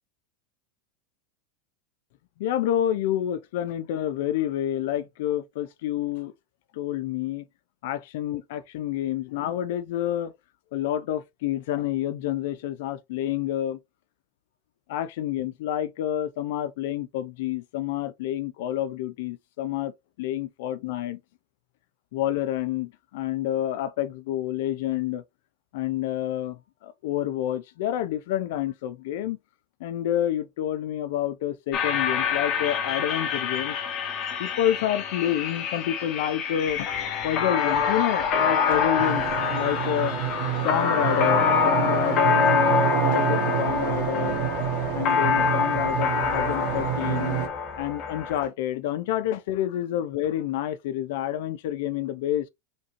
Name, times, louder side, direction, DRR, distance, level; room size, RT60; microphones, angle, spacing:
voice 1, 2.4-6.3 6.7-7.5 7.8-10.3 10.7-13.8 14.9-21.2 22.1-25.2 25.7-29.4 29.8-33.8 34.4-36.9 37.2-39.3 39.5-40.2 40.6-44.4 44.9-47.4 47.8-52.5, left 12 dB, 60° left, 0.5 m, -28 dB
sound 1, 31.7-48.5, left 6 dB, 35° left, 0.8 m, -26 dB
sound 2, 39.0-47.5, right 12 dB, 50° right, 1.0 m, -28 dB
5.2 x 2.7 x 3.0 m
supercardioid pair, 170°, 0 cm